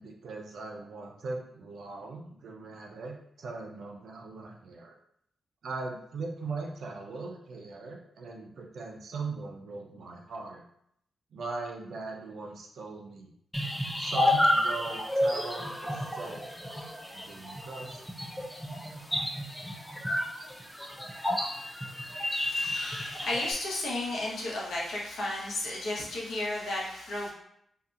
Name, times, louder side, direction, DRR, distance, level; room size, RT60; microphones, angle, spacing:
voice 1, 0.0-4.9 5.6-10.6 11.3-13.3 14.0-16.5 17.1-18.0, right 3 dB, 70° right, 0 dB, 0.5 m, -39 dB
sound 1, 13.5-23.5, left 1 dB, ahead, 0.3 m, -31 dB
voice 2, 22.3-27.3, left 2 dB, 85° left, -5 dB, 0.9 m, -33 dB
2.7 x 2.4 x 2.4 m, 0.71 s
wide cardioid pair, 135°, 0 cm